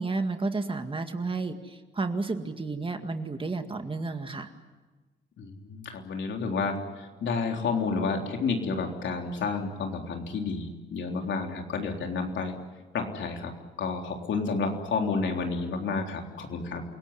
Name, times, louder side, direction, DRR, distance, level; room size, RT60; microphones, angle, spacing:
voice 1, 0.0-4.5, right 3 dB, 25° right, 7 dB, 2.1 m, -31 dB
voice 2, 5.4-12.5 12.9-13.5 13.8-16.8, left 4 dB, 75° left, 2 dB, 3.7 m, -30 dB
28.0 x 17.5 x 9.8 m, 1.3 s
cardioid pair, 90°, 19 cm